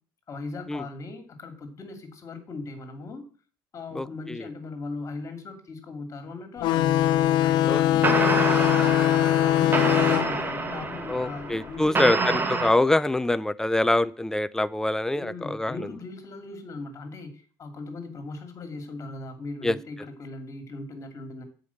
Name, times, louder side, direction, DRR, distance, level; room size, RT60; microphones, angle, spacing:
voice 1, 0.3-3.2 3.7-6.9 7.4-8.9 9.2-12.6 15.2-21.4, left 3 dB, 35° left, 7 dB, 2.4 m, -39 dB
voice 2, 3.9-4.4 7.7-8.3 11.1-15.7 19.6-19.8, left 1 dB, 5° left, 16 dB, 0.5 m, -25 dB
sound 1, 6.6-11.8, left 13 dB, 65° left, 0.5 m, -22 dB
sound 2, 7.7-7.8 8.0-12.7, right 3 dB, 25° right, 1.2 m, -27 dB
7.7 x 5.1 x 7.1 m, 0.41 s
supercardioid pair, 105°, 8 cm